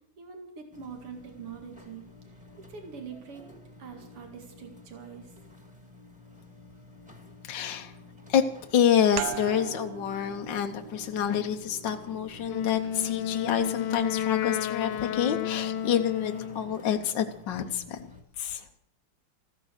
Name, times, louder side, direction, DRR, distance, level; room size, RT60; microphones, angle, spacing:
voice 1, 0.2-2.4 2.7-3.5 3.8-5.3, right 6 dB, 85° right, 3 dB, 3.1 m, -44 dB
sound 1, 0.7-18.2, left 2 dB, 5° right, 2.1 m, -51 dB
voice 2, 7.4-7.9 8.3-8.4 8.7-18.0 18.4-18.7, left 9 dB, 65° left, 5 dB, 1.4 m, -27 dB
sound 2, 9.2-14.4, right 10 dB, 60° right, 1.2 m, -40 dB
Wind instrument woodwind instrument, 12.5-16.7, left 10 dB, 85° left, 1.7 m, -32 dB
15.0 x 14.0 x 6.4 m, 0.72 s
omnidirectional pair, 2.4 m